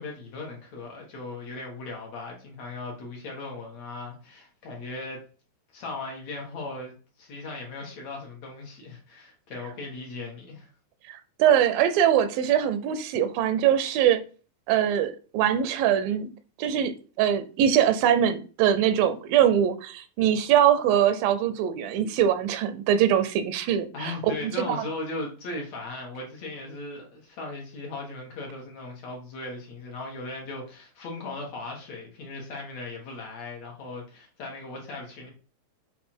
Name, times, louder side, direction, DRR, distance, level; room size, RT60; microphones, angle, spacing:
voice 1, 0.0-5.2 5.7-10.7 23.9-35.3, left 2 dB, 55° left, 2.3 m, -38 dB
voice 2, 11.1-14.2 14.7-16.3 16.6-16.9 17.2-24.1 24.7-24.8, right 9 dB, 80° right, 2.4 m, -22 dB
7.5 x 3.4 x 4.4 m
omnidirectional pair, 4.1 m